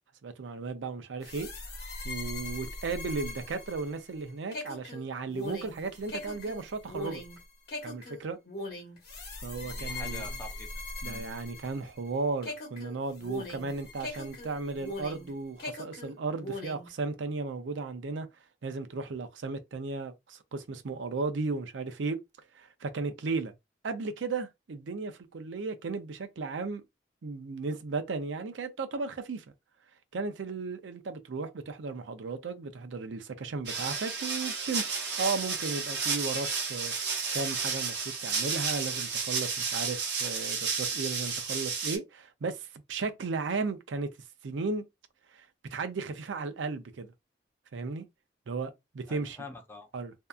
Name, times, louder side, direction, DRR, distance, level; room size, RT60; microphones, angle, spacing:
voice 1, 0.2-1.5 2.0-7.2 7.8-8.4 9.4-10.4 11.0-18.3 18.6-22.2 22.5-23.5 23.8-26.8 27.2-29.4 30.1-44.1 44.4-44.9 45.3-45.5 45.7-47.1 47.7-48.1 48.5-49.4 49.9-50.1, right 4 dB, 85° right, 0.5 m, -35 dB
sound 1, 1.2-12.1 12.4-15.3 15.6-16.9, left 2 dB, 55° left, 1.1 m, -40 dB
voice 2, 9.6-11.2 49.1-49.9, left 2 dB, 15° left, 0.5 m, -46 dB
sound 2, 33.7-42.0, right 5 dB, 60° right, 0.9 m, -32 dB
2.7 x 2.3 x 2.3 m
head